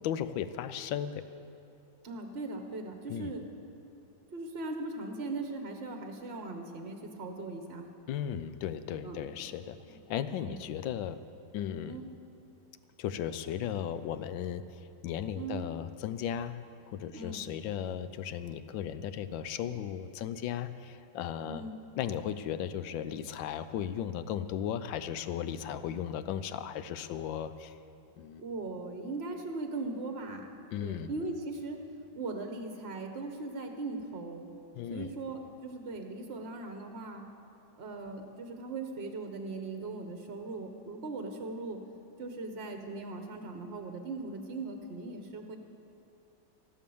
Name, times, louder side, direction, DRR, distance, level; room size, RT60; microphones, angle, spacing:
voice 1, 0.0-1.2 3.1-3.3 8.1-11.2 11.5-12.0 13.0-16.5 16.9-21.6 22.0-27.7 28.2-28.4 30.7-31.1 34.7-35.1, left 9 dB, 75° left, 12 dB, 1.3 m, -36 dB
voice 2, 2.0-3.4 4.3-7.9 8.3-8.4 9.0-9.5 9.9-10.0 10.4-10.6 11.9-12.1 15.3-15.6 17.1-17.4 21.5-21.7 28.4-30.6 30.8-31.8 32.1-34.5 34.9-37.2 37.8-41.8 42.2-45.6, right 3 dB, 45° right, 4 dB, 1.0 m, -39 dB
14.5 x 11.5 x 7.0 m, 2.7 s
omnidirectional pair, 2.1 m